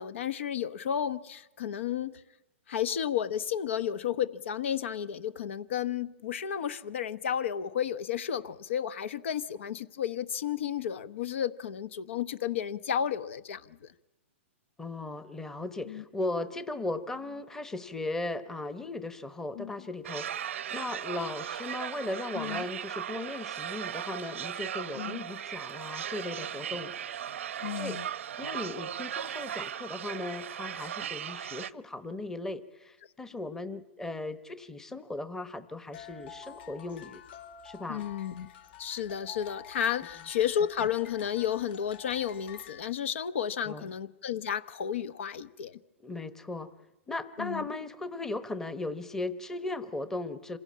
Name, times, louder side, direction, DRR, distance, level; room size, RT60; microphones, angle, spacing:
voice 1, 0.0-2.1 2.7-13.9 15.9-16.0 19.6-19.7 22.4-22.6 25.0-25.2 27.6-28.1 37.9-38.5 38.8-45.8 47.4-47.7, left 9 dB, 70° left, 16 dB, 1.0 m, -32 dB
voice 2, 14.8-26.9 27.8-28.0 28.4-37.2 37.6-38.0 43.6-43.9 46.0-46.7 47.1-50.6, left 2 dB, 5° left, 13 dB, 0.9 m, -37 dB
sound 1, 20.0-31.7, right 9 dB, 75° right, 0.7 m, -37 dB
sound 2, 35.9-42.8, left 7 dB, 55° left, 1.5 m, -49 dB
26.5 x 17.0 x 8.5 m, 1.0 s
hypercardioid pair, 145°, 7 cm